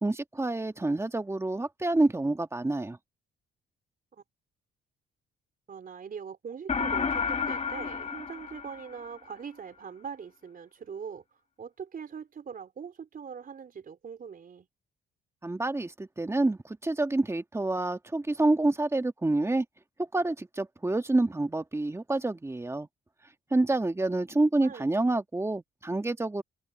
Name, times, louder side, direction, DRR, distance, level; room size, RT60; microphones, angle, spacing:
voice 1, 0.0-3.0 15.4-19.6 20.0-22.9 23.5-26.4, right 2 dB, 15° right, 1.6 m, -28 dB
voice 2, 5.7-11.2 11.6-14.7 24.6-24.9, right 6 dB, 45° right, 4.1 m, -42 dB
sound 1, 6.7-9.3, left 6 dB, 35° left, 2.1 m, -31 dB
cardioid pair, 90°, 20 cm